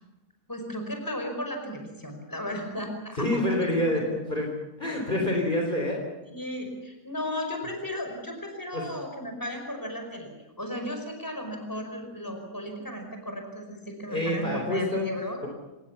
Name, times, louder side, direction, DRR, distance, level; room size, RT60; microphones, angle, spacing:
voice 1, 0.5-3.7 6.3-10.3 10.6-15.4, left 1 dB, 15° left, 4 dB, 5.2 m, -35 dB
voice 2, 3.2-6.0 8.7-8.8 14.1-15.1, left 1 dB, 35° left, 0 dB, 4.2 m, -27 dB
26.5 x 19.5 x 7.2 m, 1.1 s
omnidirectional pair, 1.5 m